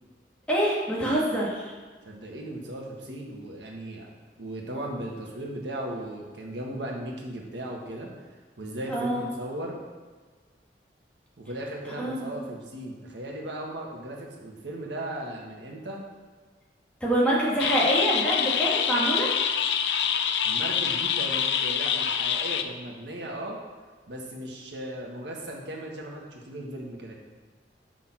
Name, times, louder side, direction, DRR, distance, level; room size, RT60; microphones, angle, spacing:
voice 1, 0.5-1.7 8.9-9.2 12.0-12.3 17.0-19.3, right 1 dB, 5° left, -6 dB, 2.1 m, -25 dB
voice 2, 2.0-4.1 4.4-8.1 8.6-9.8 11.4-16.0 20.4-23.6 24.1-27.1, right 1 dB, 90° right, -1 dB, 1.6 m, -37 dB
sound 1, 17.6-22.6, left 8 dB, 80° left, 0.5 m, -26 dB
6.6 x 6.0 x 6.0 m, 1.4 s
head